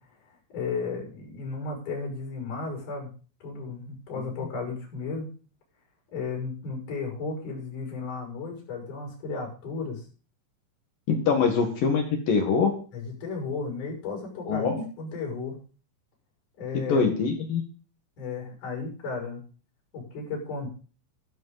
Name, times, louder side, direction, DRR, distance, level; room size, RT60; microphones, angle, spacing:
voice 1, 0.5-3.1 3.4-5.3 6.1-10.1 11.3-11.4 12.9-15.6 16.6-17.1 18.2-19.4 19.9-20.7, left 4 dB, 40° left, 0 dB, 7.6 m, -34 dB
voice 2, 11.1-12.7 14.5-14.8 16.7-17.6, left 5 dB, 60° left, 5 dB, 2.7 m, -24 dB
13.5 x 12.5 x 4.1 m, 0.37 s
omnidirectional pair, 5.9 m